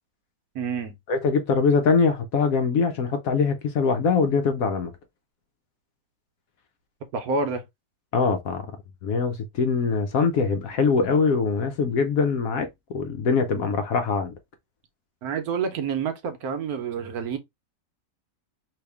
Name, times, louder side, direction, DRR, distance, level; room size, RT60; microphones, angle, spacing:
voice 1, 0.5-0.9 7.1-7.6 15.2-17.4, right 5 dB, 70° right, 1.1 m, -28 dB
voice 2, 1.1-4.9 8.1-8.7 9.0-14.3, left 5 dB, 70° left, 0.9 m, -23 dB
3.0 x 2.8 x 3.3 m
omnidirectional pair, 1.8 m